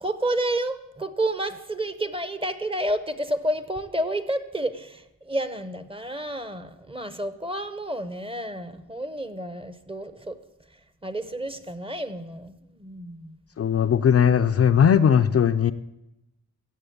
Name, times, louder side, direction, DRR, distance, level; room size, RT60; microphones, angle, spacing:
voice 1, 0.0-10.4 11.0-13.4, right 1 dB, 15° right, 11 dB, 0.9 m, -30 dB
voice 2, 13.6-15.7, left 8 dB, 45° left, 9 dB, 0.5 m, -18 dB
15.0 x 7.6 x 8.5 m, 0.90 s
wide cardioid pair, 135°, 34 cm